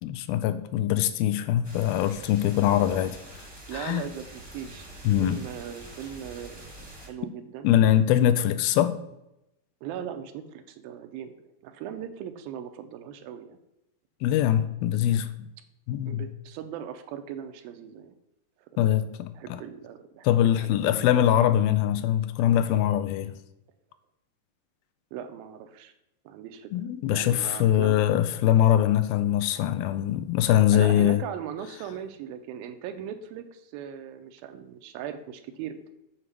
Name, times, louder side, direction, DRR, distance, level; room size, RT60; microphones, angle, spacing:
voice 1, 0.0-3.1 3.7-4.0 5.0-5.4 7.6-8.9 14.2-15.3 15.9-16.3 18.8-19.3 20.2-23.3 26.7-31.2, left 11 dB, 85° left, 2.4 m, -22 dB
sound 1, 1.6-7.1, right 1 dB, 15° right, 1.0 m, -45 dB
voice 2, 2.8-3.2 3.7-4.9 5.2-7.7 9.8-13.6 16.1-18.2 18.6-19.0 19.3-21.4 25.1-25.9 26.3-26.7 27.1-28.0 28.5-28.6 30.7-35.9, right 9 dB, 85° right, 2.4 m, -39 dB
7.3 x 4.7 x 6.8 m
omnidirectional pair, 4.3 m